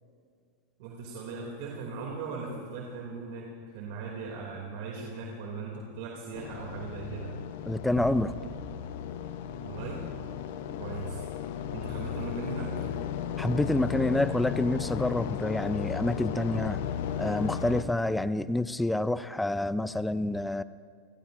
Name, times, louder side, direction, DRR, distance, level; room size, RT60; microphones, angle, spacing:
voice 1, 0.8-7.4 9.6-10.1 10.8-11.2 11.7-12.7, right 4 dB, 60° right, -1 dB, 2.6 m, -38 dB
sound 1, 6.3-17.8, left 9 dB, 65° left, 0.9 m, -35 dB
voice 2, 7.7-8.3 13.4-16.8 17.2-20.6, left 1 dB, 5° left, 15 dB, 0.5 m, -28 dB
sound 2, 8.0-9.9, right 5 dB, 80° right, 1.8 m, -44 dB
29.0 x 16.0 x 2.6 m, 2.1 s
hypercardioid pair, 110°, 0 cm